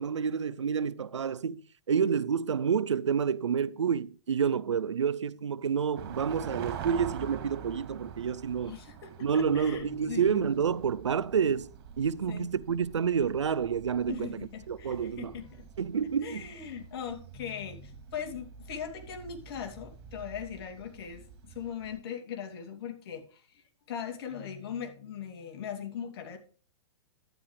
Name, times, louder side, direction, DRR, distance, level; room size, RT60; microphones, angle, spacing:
voice 1, 0.0-1.6 1.9-8.7 9.2-11.7 12.0-14.4 14.7-15.3 15.8-16.5, right 7 dB, 90° right, 0.6 m, -29 dB
sound 1, 5.9-22.0, right 8 dB, 55° right, 3.2 m, -46 dB
voice 2, 8.6-10.6 12.3-12.5 14.1-15.6 16.2-26.4, left 8 dB, 55° left, 2.8 m, -40 dB
12.0 x 10.0 x 3.2 m
hypercardioid pair, 120°, 15 cm